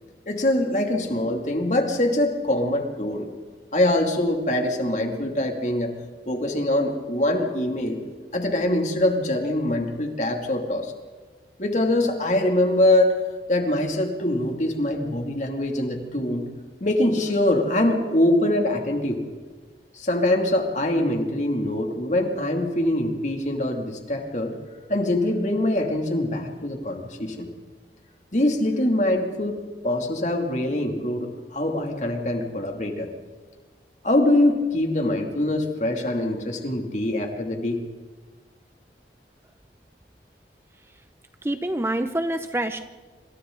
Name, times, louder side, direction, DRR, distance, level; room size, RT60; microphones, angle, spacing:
voice 1, 0.3-3.3 3.7-5.9 6.3-8.0 8.3-10.9 11.6-13.1 13.5-16.5 16.8-19.2 19.9-24.5 24.9-27.5 28.3-33.1 34.0-37.8, left 1 dB, 45° left, 2 dB, 2.8 m, -23 dB
voice 2, 41.4-42.9, right 1 dB, 15° right, 8 dB, 0.7 m, -26 dB
27.0 x 26.5 x 4.0 m, 1.4 s
head